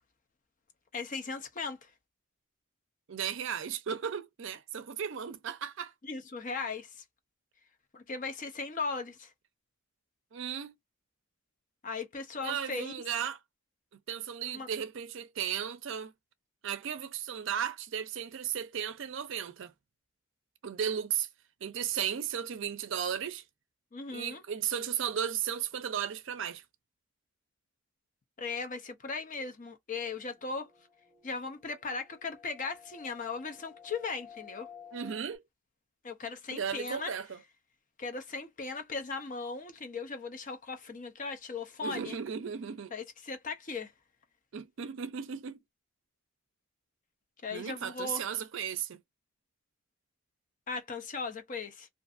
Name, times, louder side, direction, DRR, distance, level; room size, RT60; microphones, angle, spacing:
voice 1, 0.9-1.9 6.0-7.0 7.9-9.3 11.8-12.9 14.5-14.7 23.9-24.4 28.4-30.7 31.2-34.7 36.0-37.1 38.0-42.2 42.9-43.9 47.4-48.3 50.7-51.9, left 4 dB, 40° left, 0.5 m, -38 dB
voice 2, 3.1-5.9 10.3-10.7 12.4-13.4 14.1-16.1 16.6-19.7 20.6-21.3 21.6-23.4 24.1-26.6 34.9-35.4 36.5-37.4 41.8-42.9 44.5-45.6 47.5-49.0, right 8 dB, 60° right, 0.4 m, -35 dB
sound 1, 30.1-35.4, left 7 dB, 5° left, 1.4 m, -54 dB
2.5 x 2.5 x 2.4 m
head